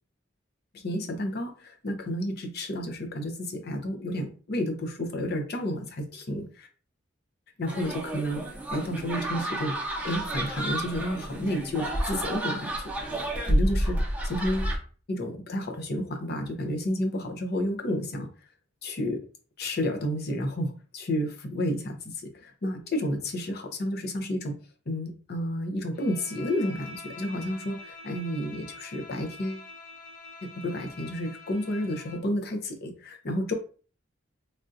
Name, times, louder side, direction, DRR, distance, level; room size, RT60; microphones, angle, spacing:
voice 1, 0.7-6.7 7.6-8.4 8.7-9.7 10.0-14.8 15.1-18.3 18.8-19.2 19.6-24.5 24.9-29.7 30.6-33.5, left 1 dB, 55° left, 3 dB, 0.7 m, -31 dB
sound 1, 7.7-14.8, right 1 dB, 5° right, 0.7 m, -30 dB
Bowed string instrument, 25.9-32.3, left 3 dB, 90° left, 1.3 m, -45 dB
3.4 x 2.5 x 2.5 m, 0.38 s
head